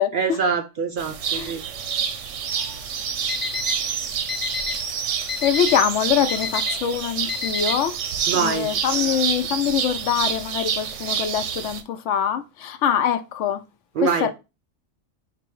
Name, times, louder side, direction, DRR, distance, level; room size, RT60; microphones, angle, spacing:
voice 1, 0.1-1.6 8.3-8.7 13.9-14.3, right 6 dB, 60° right, 0.6 m, -24 dB
sound 1, 1.0-11.8, right 7 dB, 85° right, 1.0 m, -28 dB
Alarm, 3.3-3.7 4.3-4.7 5.3-5.7 6.3-6.7 7.3-7.7, left 7 dB, 40° left, 1.1 m, -27 dB
voice 2, 5.4-7.9 8.3-13.6 14.2-14.3, left 9 dB, 80° left, 0.9 m, -23 dB
4.4 x 2.0 x 4.5 m
omnidirectional pair, 1.2 m